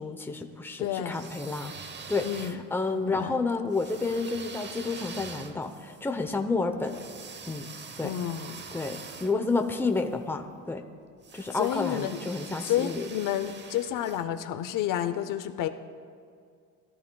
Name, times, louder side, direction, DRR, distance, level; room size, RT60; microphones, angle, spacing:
voice 1, 0.0-1.7 2.1-7.0 7.5-7.7 8.0-8.1 8.7-10.8 11.3-13.1, left 3 dB, 5° left, 5 dB, 0.7 m, -30 dB
voice 2, 0.8-1.2 2.2-2.6 2.9-3.4 8.0-8.6 11.5-12.2 12.6-15.7, left 11 dB, 75° left, 9 dB, 0.7 m, -30 dB
sound 1, 1.0-2.9 3.7-10.1 11.2-14.2, right 5 dB, 35° right, 0.8 m, -44 dB
21.0 x 13.0 x 2.3 m, 2.3 s
cardioid pair, 125°, 32 cm